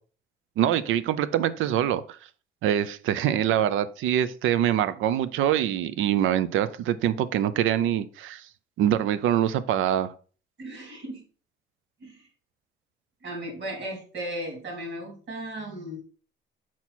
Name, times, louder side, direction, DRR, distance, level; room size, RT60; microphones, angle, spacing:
voice 1, 0.6-2.2 2.6-8.5 8.8-10.1, right 10 dB, 85° right, 15 dB, 0.5 m, -24 dB
voice 2, 10.6-11.2 12.0-12.3 13.2-16.0, right 1 dB, 65° right, 0 dB, 3.0 m, -36 dB
5.9 x 4.4 x 4.1 m, 0.40 s
cardioid pair, 90°, 20 cm